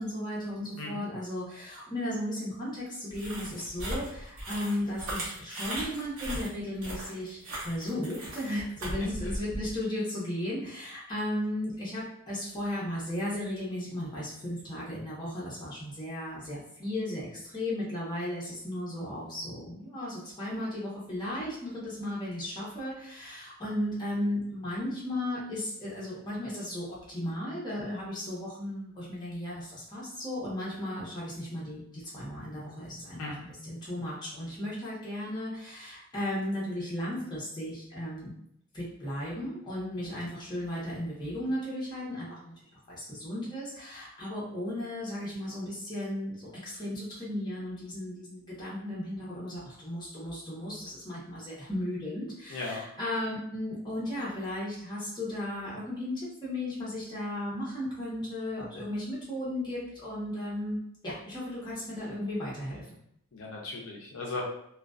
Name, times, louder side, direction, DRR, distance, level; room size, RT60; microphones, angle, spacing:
voice 1, 0.0-7.4 7.6-38.3 38.7-42.5 42.9-56.1 56.4-60.8 61.0-63.0, left 1 dB, 20° left, -7 dB, 0.8 m, -35 dB
sound 1, 3.1-9.7, right 1 dB, 75° right, 0.8 m, -38 dB
voice 2, 52.5-52.8 53.1-53.2 63.3-64.5, left 2 dB, 65° left, -3 dB, 0.4 m, -37 dB
2.3 x 2.2 x 2.4 m, 0.73 s
head